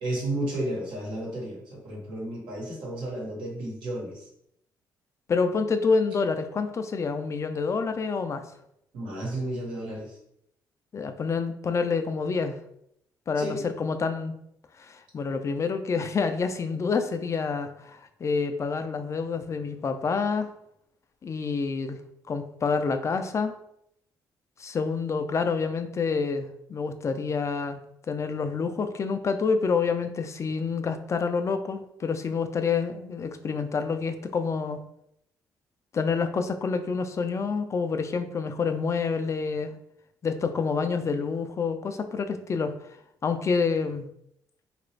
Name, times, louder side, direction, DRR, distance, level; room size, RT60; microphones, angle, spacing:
voice 1, 0.0-4.2 8.9-10.2 13.4-13.6, right 1 dB, 80° right, -4 dB, 1.2 m, -32 dB
voice 2, 5.3-8.4 10.9-12.6 13.3-14.4 14.8-20.5 21.2-22.0 22.3-23.5 24.6-27.8 28.1-34.8 35.9-39.7 40.2-42.7 43.2-44.1, left 5 dB, 35° left, 8 dB, 0.4 m, -28 dB
2.9 x 2.5 x 3.2 m, 0.75 s
cardioid pair, 80°, 8 cm